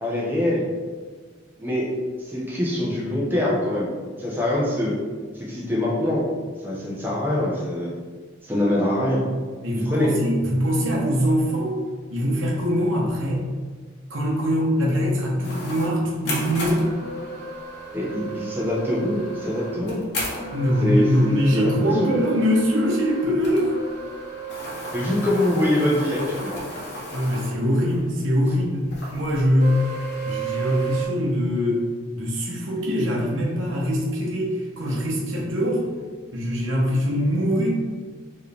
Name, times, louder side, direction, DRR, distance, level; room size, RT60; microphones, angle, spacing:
voice 1, 0.0-0.7 1.6-1.9 2.2-5.0 5.3-6.3 6.6-7.9 8.4-9.3 9.8-10.1 17.9-20.0 20.8-22.1 24.9-26.7, left 1 dB, 10° right, -5 dB, 0.9 m, -24 dB
voice 2, 9.6-11.8 12.1-13.5 14.1-16.9 20.5-23.7 27.1-28.8 29.1-29.7 30.2-31.8 32.1-35.8 36.3-37.7, equal, 75° right, -3 dB, 0.9 m, -23 dB
sound 1, 15.4-28.0 28.3-28.4 28.9-31.1, right 2 dB, 55° left, 1.1 m, -33 dB
4.5 x 3.1 x 3.4 m, 1.5 s
head